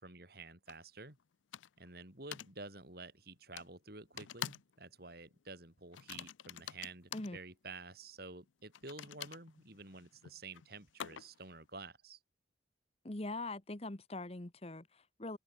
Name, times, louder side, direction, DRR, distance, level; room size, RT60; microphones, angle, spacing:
voice 1, 0.0-1.2 1.8-12.2, right 3 dB, 55° right, 4.6 m, -50 dB
sound 1, 0.7-0.8 1.5-1.9 2.3-2.5 3.6-3.7 4.2-4.7 5.0-5.3 5.9-7.3 8.7-11.5, left 10 dB, 85° left, 0.5 m, -46 dB
voice 2, 13.0-15.4, left 2 dB, 30° left, 1.2 m, -42 dB
head